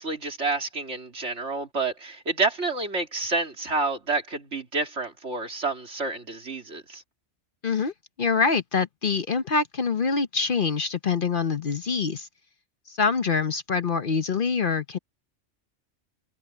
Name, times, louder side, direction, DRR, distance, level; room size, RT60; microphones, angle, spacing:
voice 1, 0.0-7.0, right 3 dB, 65° right, 3.3 m, -29 dB
voice 2, 8.2-12.3 12.9-15.0, left 5 dB, 50° left, 1.0 m, -25 dB
omnidirectional pair, 1.3 m